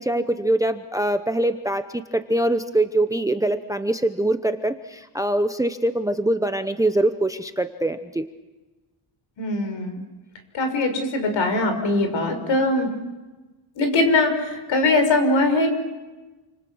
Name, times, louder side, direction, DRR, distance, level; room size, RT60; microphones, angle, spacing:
voice 1, 0.0-8.3, right 1 dB, 5° right, 9 dB, 0.8 m, -23 dB
voice 2, 9.4-10.0 10.5-12.9 13.8-15.7, left 2 dB, 60° left, 6 dB, 5.9 m, -21 dB
28.5 x 26.5 x 6.3 m, 1.2 s
cardioid pair, 160°, 50 cm